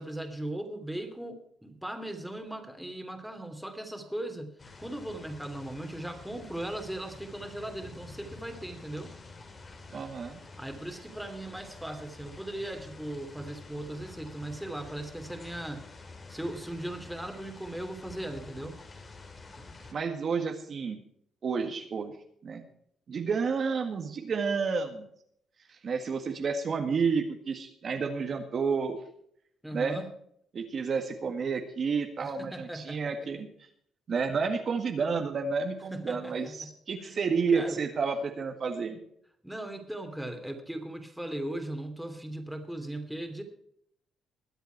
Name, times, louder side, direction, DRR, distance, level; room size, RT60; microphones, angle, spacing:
voice 1, 0.0-4.5 4.8-9.1 10.6-15.9 16.3-18.8 29.6-30.1 32.2-33.4 35.9-36.7 37.0-37.2 37.5-37.8 39.4-43.4, right 1 dB, 5° right, 5 dB, 2.8 m, -38 dB
sound 1, 4.6-19.9, left 3 dB, 35° left, 2.9 m, -48 dB
voice 2, 9.9-10.4 19.9-21.0 21.4-22.1 22.4-22.6 23.1-25.1 25.7-29.0 29.7-30.1 30.5-33.5 34.1-39.0, right 5 dB, 50° right, 5 dB, 1.8 m, -30 dB
22.0 x 8.1 x 4.6 m, 0.68 s
cardioid pair, 90°, 0 cm